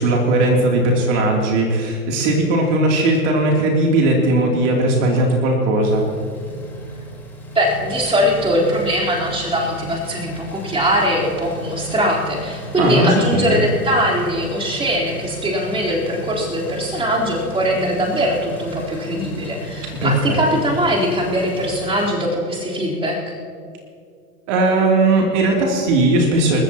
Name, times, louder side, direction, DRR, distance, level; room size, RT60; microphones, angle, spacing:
voice 1, 0.0-6.1 12.8-13.6 20.0-20.4 24.5-26.6, right 2 dB, 50° right, -1 dB, 3.1 m, -17 dB
sound 1, 5.8-22.1, equal, 5° left, 4.3 m, -34 dB
voice 2, 7.5-23.3, equal, 10° right, -4 dB, 4.0 m, -21 dB
29.5 x 14.5 x 3.0 m, 2.2 s
hypercardioid pair, 105°, 47 cm